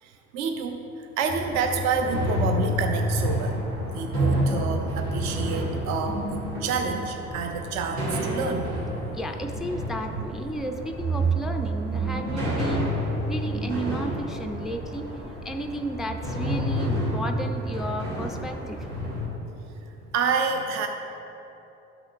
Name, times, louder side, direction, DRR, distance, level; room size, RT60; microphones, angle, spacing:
voice 1, 0.0-3.6 3.9-9.0 19.8-20.9, right 5 dB, 45° right, 5 dB, 0.6 m, -29 dB
sound 1, 1.3-19.3, right 1 dB, 70° right, 1.5 m, -29 dB
voice 2, 9.1-12.9 13.3-15.1 15.4-18.9, right 1 dB, ahead, 5 dB, 0.3 m, -33 dB
12.5 x 6.2 x 2.5 m, 3.0 s
figure-of-eight pair, 50°, 37 cm